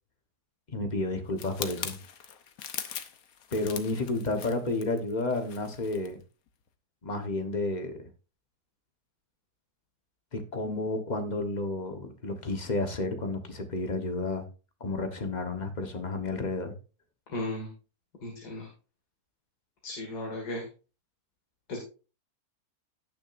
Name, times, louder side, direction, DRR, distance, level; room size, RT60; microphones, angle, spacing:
voice 1, 0.7-2.0 3.5-6.2 7.0-8.1 10.3-14.4 14.8-16.7, left 2 dB, 30° left, 6 dB, 1.2 m, -31 dB
sound 1, 1.4-6.1 6.5-6.7, left 8 dB, 65° left, 1.3 m, -41 dB
voice 2, 17.3-17.7 18.2-18.7 19.8-20.6 21.7-21.8, left 1 dB, 85° left, 0 dB, 2.6 m, -35 dB
17.5 x 6.2 x 2.6 m, 0.34 s
omnidirectional pair, 1.7 m